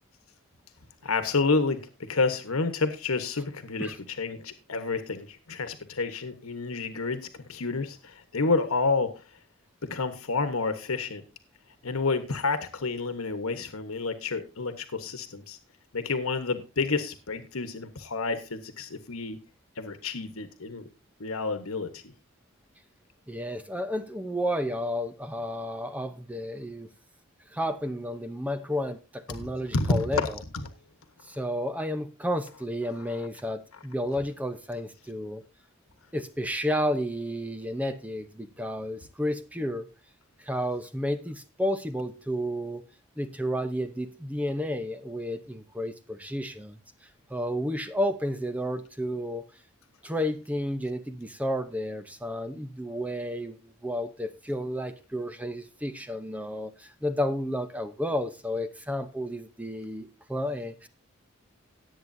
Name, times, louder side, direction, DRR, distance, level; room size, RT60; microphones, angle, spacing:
voice 1, 1.0-9.2 9.8-11.2 11.8-15.6 15.9-19.4 19.8-20.9 21.2-22.0 29.3-30.6 33.0-33.2, left 3 dB, 85° left, 9 dB, 1.2 m, -29 dB
voice 2, 23.3-26.9 27.5-30.4 31.2-35.4 36.1-39.9 40.4-42.8 43.2-49.4 50.0-60.9, equal, 5° right, 10 dB, 0.7 m, -31 dB
18.0 x 8.1 x 2.7 m, 0.30 s
head